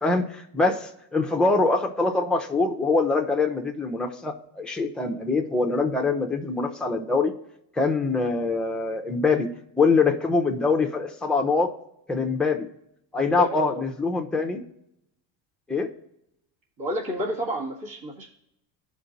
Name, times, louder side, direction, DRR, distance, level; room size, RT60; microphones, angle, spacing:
voice 1, 0.0-7.3 7.8-9.5 9.8-11.7 12.1-12.7 13.1-14.6 15.7-15.9, left 3 dB, ahead, 2 dB, 0.8 m, -24 dB
voice 2, 13.4-13.8 16.8-18.3, equal, 45° right, -7 dB, 2.1 m, -30 dB
13.0 x 5.1 x 2.6 m, 0.78 s
supercardioid pair, 95°, 47 cm